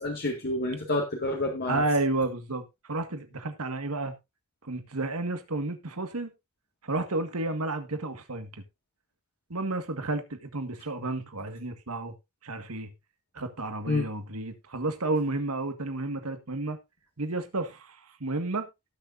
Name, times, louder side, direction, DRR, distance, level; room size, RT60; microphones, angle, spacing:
voice 1, 0.0-1.8 13.9-14.1, left 2 dB, 45° left, 1.9 m, -28 dB
voice 2, 1.7-4.1 4.6-6.3 6.8-8.5 9.5-12.1 12.4-12.9 13.3-16.8 17.2-18.7, right 2 dB, 75° right, 1.7 m, -31 dB
18.5 x 6.8 x 2.6 m
head